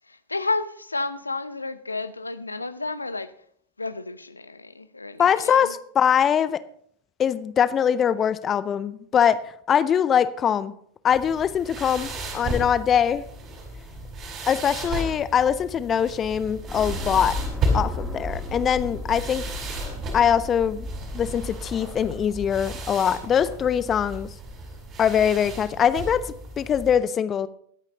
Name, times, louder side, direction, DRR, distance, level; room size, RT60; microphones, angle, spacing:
voice 1, 0.1-3.3 3.8-5.7, left 3 dB, 80° left, 0.6 m, -31 dB
voice 2, 5.2-6.6 7.2-9.4 9.7-10.7 11.0-13.2 14.5-17.4 17.7-19.4 20.1-20.9 21.1-24.3 25.0-27.5, left 8 dB, 25° left, 0.5 m, -22 dB
sound 1, 11.1-26.9, right 1 dB, 30° right, 4.6 m, -34 dB
sound 2, 16.7-22.9, left 1 dB, ahead, 3.1 m, -35 dB
22.5 x 9.0 x 2.9 m
figure-of-eight pair, 90°, 0 cm